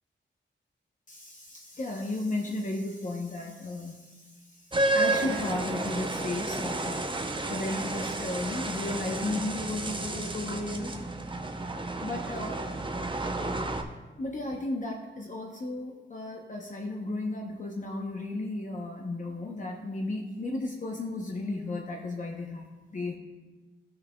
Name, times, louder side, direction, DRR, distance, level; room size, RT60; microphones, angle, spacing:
voice 1, 1.1-7.0 7.5-10.9 12.0-12.6 14.2-23.2, left 2 dB, 40° left, 0 dB, 0.8 m, -34 dB
sound 1, 4.7-13.8, right 2 dB, 25° right, 0.7 m, -31 dB
13.5 x 6.4 x 2.3 m, 1.3 s
wide cardioid pair, 100°, 20 cm